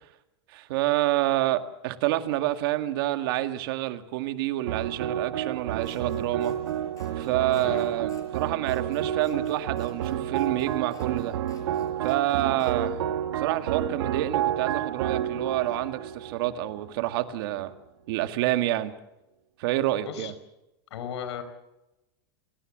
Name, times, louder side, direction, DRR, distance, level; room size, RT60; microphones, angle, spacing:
voice 1, 0.5-6.6 7.2-11.4 12.0-13.0 13.4-17.7 18.1-18.9 19.6-20.3, right 15 dB, 60° right, 1.9 m, -28 dB
sound 1, 4.7-17.1, right 10 dB, 85° right, 2.1 m, -30 dB
Scissors, 5.8-12.8, left 6 dB, 25° left, 6.2 m, -58 dB
voice 2, 20.9-21.4, left 8 dB, 90° left, 4.7 m, -35 dB
30.0 x 17.0 x 7.5 m
supercardioid pair, 160°, 14 cm